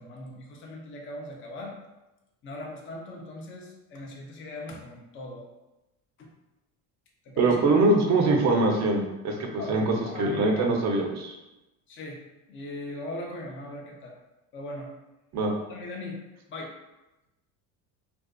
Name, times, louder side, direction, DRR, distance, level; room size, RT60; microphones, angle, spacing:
voice 1, 0.0-1.7 2.4-5.4 6.2-6.3 7.2-7.6 9.6-10.8 11.9-12.2 12.5-14.2 14.5-14.9 15.7-16.2 16.5-16.7, left 2 dB, 30° left, 0 dB, 0.5 m, -39 dB
voice 2, 7.4-11.4 15.3-15.5, right 2 dB, 40° right, 2 dB, 0.6 m, -23 dB
2.5 x 2.3 x 2.2 m, 0.99 s
supercardioid pair, 85°, 44 cm